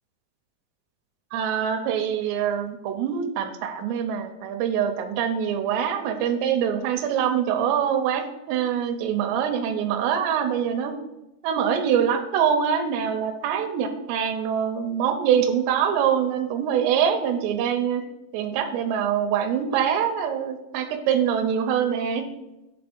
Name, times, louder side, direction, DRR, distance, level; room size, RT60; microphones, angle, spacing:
voice 1, 1.3-10.9 11.4-18.0 18.3-22.2, right 8 dB, 85° right, 5 dB, 2.8 m, -24 dB
8.4 x 3.5 x 5.2 m, 0.94 s
omnidirectional pair, 4.9 m